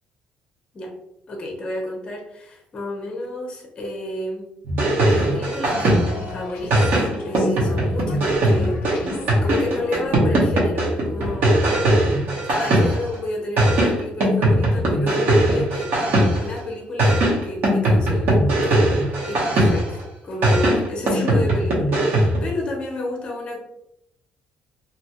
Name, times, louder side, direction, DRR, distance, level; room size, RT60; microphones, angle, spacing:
voice 1, 1.3-4.5 5.1-6.0 6.3-9.1 9.3-11.9 12.2-15.9 16.4-18.9 19.2-23.6, left 1 dB, 30° left, 0 dB, 0.6 m, -30 dB
sound 1, 4.6-6.3 6.7-13.1 13.6-16.6 17.0-20.0 20.4-22.5, right 1 dB, 60° right, 0.8 m, -19 dB
sound 2, 5.1-10.4, left 3 dB, 85° left, 0.4 m, -35 dB
2.6 x 2.2 x 2.8 m, 0.82 s
cardioid pair, 155°, 4 cm